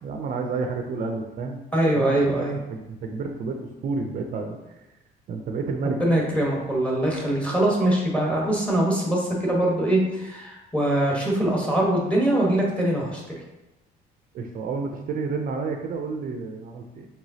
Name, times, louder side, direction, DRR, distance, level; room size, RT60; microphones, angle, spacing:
voice 1, 0.0-1.6 1.9-4.6 5.3-6.0 14.3-17.1, right 4 dB, 55° right, 4 dB, 0.5 m, -30 dB
voice 2, 1.7-2.6 6.0-13.4, right 1 dB, 5° left, -3 dB, 1.2 m, -23 dB
4.8 x 3.4 x 2.8 m, 0.98 s
cardioid pair, 110°, 17 cm